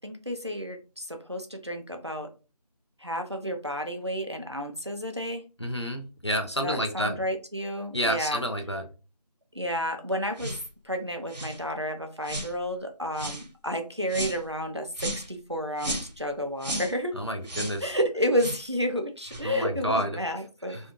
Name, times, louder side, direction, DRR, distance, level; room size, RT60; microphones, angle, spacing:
voice 1, 0.0-2.3 3.0-5.4 6.6-8.4 9.5-10.6 10.8-17.1 17.8-20.8, equal, 40° right, 5 dB, 0.4 m, -31 dB
voice 2, 5.6-7.2 7.9-8.8 17.2-17.9 19.4-20.1 20.7-20.9, equal, 40° left, 4 dB, 0.5 m, -29 dB
sound 1, 10.4-10.7 11.3-11.6 12.2-12.5 13.1-13.5 14.1-14.4 15.0-15.3 15.8-16.2 16.6-16.9 17.4-17.8 18.4-18.6 19.2-19.4, right 1 dB, 85° right, 0.9 m, -34 dB
2.5 x 2.3 x 2.9 m, 0.32 s
figure-of-eight pair, 180°, 21 cm